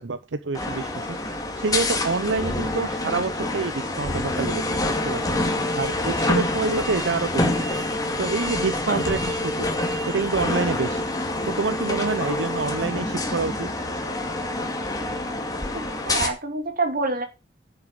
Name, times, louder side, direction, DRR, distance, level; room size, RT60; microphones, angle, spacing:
voice 1, 0.0-5.3 5.8-7.7 8.2-9.7 10.1-11.0 11.5-13.7, right 4 dB, 80° right, 0.7 m, -27 dB
sound 1, 0.5-16.3, left 2 dB, 20° left, 2.1 m, -26 dB
voice 2, 15.7-17.3, right 3 dB, 50° right, 2.4 m, -27 dB
10.0 x 6.8 x 6.6 m
head